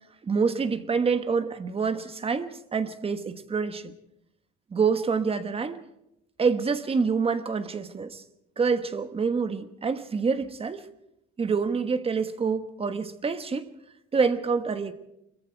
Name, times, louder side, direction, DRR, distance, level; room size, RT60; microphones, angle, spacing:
voice 1, 0.2-3.9 4.7-5.8 6.4-8.2 8.6-10.8 11.4-13.7 14.1-14.9, right 5 dB, 20° right, 1.2 m, -27 dB
25.5 x 22.5 x 4.6 m
cardioid pair, 165°, 30 cm